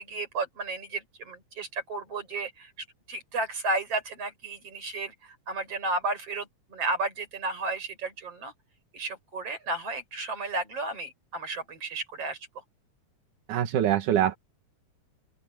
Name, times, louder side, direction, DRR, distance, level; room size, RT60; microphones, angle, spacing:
voice 1, 0.0-2.7 3.1-8.5 8.9-12.4, right 2 dB, 50° right, 7.2 m, -33 dB
voice 2, 13.5-14.4, right 11 dB, 85° right, 2.8 m, -24 dB
open air
omnidirectional pair, 3.5 m